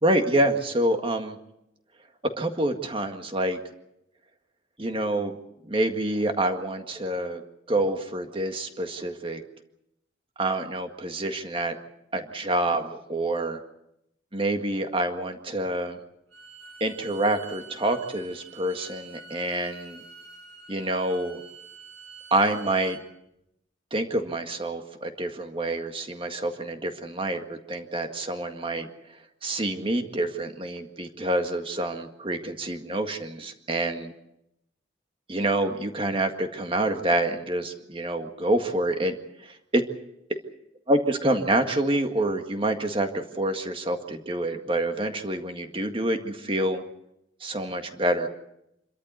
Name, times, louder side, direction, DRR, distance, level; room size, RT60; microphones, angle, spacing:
voice 1, 0.0-1.4 2.4-3.6 4.8-5.4 5.6-7.4 7.7-9.4 10.4-11.8 12.1-13.6 14.3-16.0 16.8-20.0 20.7-21.4 22.3-23.0 23.9-28.9 29.4-34.1 35.3-39.2 39.4-39.8 40.9-46.8 47.4-48.3, right 1 dB, 25° right, 6 dB, 1.9 m, -27 dB
Bowed string instrument, 16.3-23.0, right 5 dB, 90° right, 4.9 m, -47 dB
26.5 x 13.5 x 9.6 m, 0.83 s
head